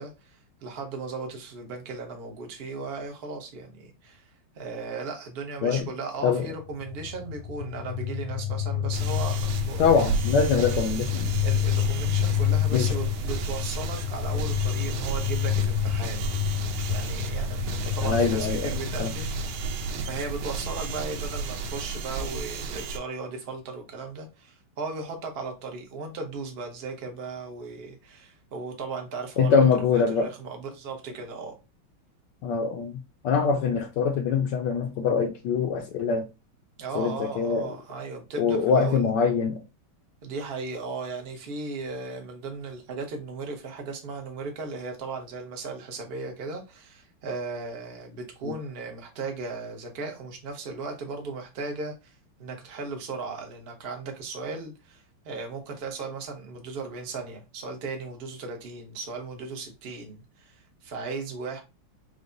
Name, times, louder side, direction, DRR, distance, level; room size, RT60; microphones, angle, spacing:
voice 1, 0.0-10.1 11.4-16.3 16.9-19.3 20.1-29.6 29.9-31.6 36.8-39.0 40.2-61.6, right 4 dB, 65° right, 0.6 m, -36 dB
sound 1, 6.5-21.8, left 10 dB, 90° left, 2.4 m, -29 dB
sound 2, 8.9-23.0, right 5 dB, 85° right, 1.5 m, -33 dB
voice 2, 9.8-11.3 12.7-12.8 18.0-19.1 29.4-30.3 32.4-36.3 36.9-37.7 38.4-39.6 48.4-48.5, left 5 dB, 75° left, 1.0 m, -24 dB
4.7 x 2.1 x 3.8 m
omnidirectional pair, 2.4 m